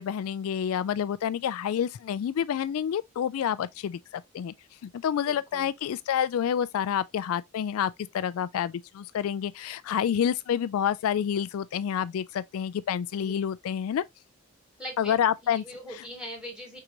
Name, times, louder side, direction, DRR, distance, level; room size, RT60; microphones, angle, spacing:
voice 1, 0.0-4.5 4.8-14.0 15.0-15.6, left 8 dB, 75° left, 0.3 m, -28 dB
voice 2, 5.3-5.7 13.2-13.3 14.8-15.1 15.4-16.8, equal, 5° right, 1.9 m, -41 dB
4.7 x 3.8 x 2.9 m
head